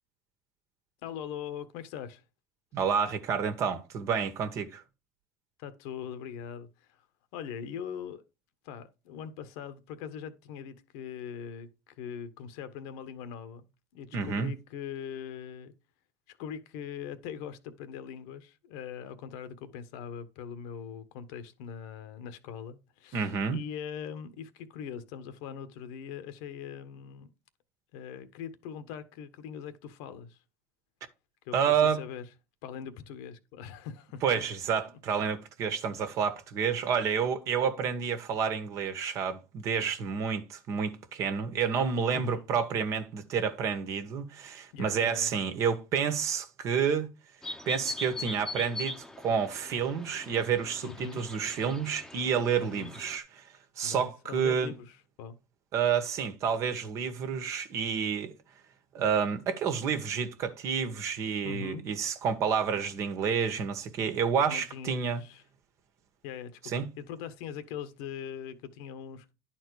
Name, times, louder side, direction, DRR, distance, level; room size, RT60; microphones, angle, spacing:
voice 1, 1.0-2.2 5.6-7.0 7.3-8.2 8.6-13.7 13.9-15.7 16.3-27.3 27.9-30.4 31.4-32.2 32.6-34.4 42.1-42.4 44.7-45.3 50.8-51.3 52.6-52.9 53.8-55.3 61.4-61.9 64.4-65.4 66.2-69.3, left 8 dB, 75° left, 1.2 m, -41 dB
voice 2, 2.7-4.8 14.1-14.5 23.1-23.6 31.5-32.0 34.2-47.1 47.6-54.7 55.7-58.3 58.9-65.2 66.6-66.9, right 7 dB, 55° right, 1.6 m, -29 dB
sound 1, 47.4-53.2, left 2 dB, 10° left, 1.0 m, -41 dB
10.5 x 4.4 x 4.8 m
supercardioid pair, 105°, 6 cm